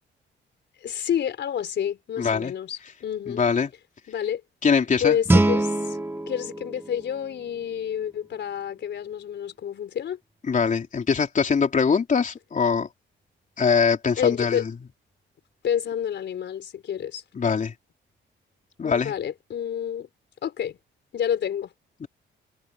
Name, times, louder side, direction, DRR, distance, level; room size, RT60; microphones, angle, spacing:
voice 1, 0.8-3.4 4.1-4.4 5.0-6.0 6.3-10.2 14.2-14.6 15.6-17.2 18.8-20.1 20.4-20.8 21.1-21.7, left 9 dB, 65° left, 4.3 m, -29 dB
voice 2, 2.2-2.5 3.3-3.7 4.6-5.2 10.5-12.9 13.6-14.6 17.3-17.7 18.8-19.1 22.0-22.1, left 6 dB, 40° left, 3.7 m, -22 dB
Guitar, 5.3-8.0, right 2 dB, 10° right, 1.5 m, -25 dB
cardioid pair, 90°, 20 cm